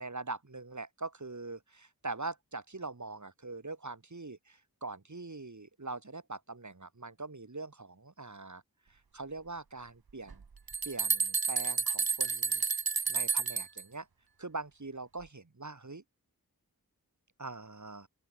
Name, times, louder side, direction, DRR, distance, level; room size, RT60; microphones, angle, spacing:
voice 1, 0.0-8.6 8.9-10.4 10.8-12.6 13.1-14.1 14.4-16.0 17.4-18.1, right 3 dB, 55° right, 6.2 m, -42 dB
sound 1, 10.3-10.4 10.7-13.8, right 5 dB, 85° right, 2.2 m, -30 dB
open air
wide cardioid pair, 65°, 36 cm